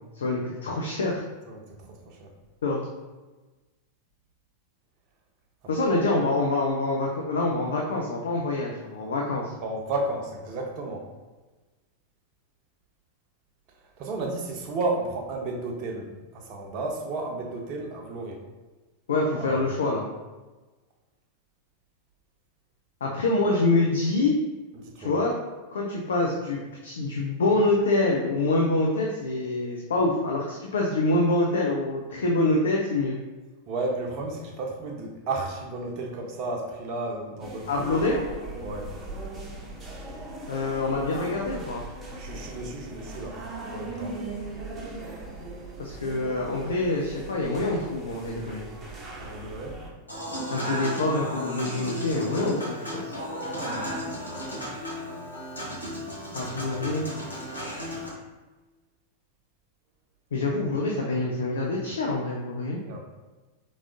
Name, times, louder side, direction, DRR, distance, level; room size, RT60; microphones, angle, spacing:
voice 1, 0.1-1.2 2.6-2.8 5.7-9.5 19.1-20.1 23.0-24.3 25.0-25.3 25.7-33.2 37.7-38.2 40.5-41.8 45.8-48.6 50.5-53.1 56.3-57.1 60.3-62.8, left 2 dB, 65° left, -1 dB, 0.5 m, -26 dB
voice 2, 1.5-2.3 5.8-5.9 9.6-11.1 14.0-18.4 19.4-19.6 24.8-25.2 33.7-37.9 38.6-38.9 42.2-43.4 43.7-44.2 49.2-49.8 53.4-54.0 56.3-57.0 62.9-63.0, right 2 dB, 40° right, 1 dB, 0.9 m, -33 dB
sound 1, 37.4-49.9, right 2 dB, 15° right, 1.0 m, -39 dB
Human voice / Acoustic guitar / Piano, 50.1-58.1, equal, 85° left, 1.0 m, -34 dB
4.8 x 3.8 x 2.5 m, 1.2 s
figure-of-eight pair, 90°, 0 cm